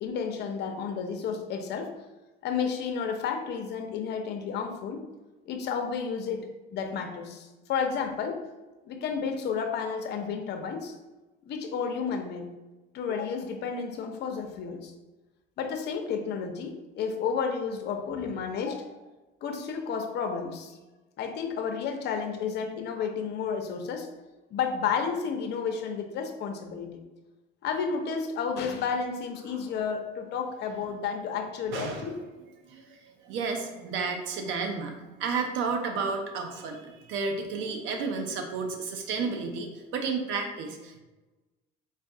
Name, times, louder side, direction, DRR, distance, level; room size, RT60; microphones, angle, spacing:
voice 1, 0.0-1.9 2.4-5.1 5.5-8.4 8.9-10.9 11.5-12.4 12.9-14.9 15.6-19.0 19.4-20.8 21.2-24.1 24.5-26.9 27.6-32.2, left 6 dB, 55° left, 4 dB, 0.7 m, -31 dB
voice 2, 31.7-32.1 32.6-41.0, right 4 dB, 70° right, 4 dB, 0.8 m, -32 dB
3.9 x 2.4 x 3.6 m, 1.1 s
cardioid pair, 110°, 21 cm